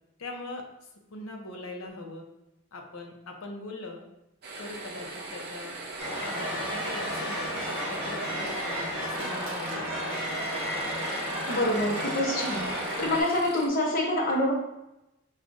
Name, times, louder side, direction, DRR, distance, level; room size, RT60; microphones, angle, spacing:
voice 1, 0.2-0.6 1.1-2.2 2.7-4.0 4.6-5.7 6.3-7.5 7.9-9.9, left 2 dB, 80° left, 2 dB, 0.7 m, -41 dB
sound 1, 4.4-13.7, right 2 dB, 50° right, 0.6 m, -41 dB
sound 2, 6.0-13.2, equal, 25° right, 1.2 m, -32 dB
voice 2, 11.5-12.7 13.0-14.5, left 1 dB, 45° left, -1 dB, 0.8 m, -26 dB
6.2 x 2.4 x 2.5 m, 0.91 s
head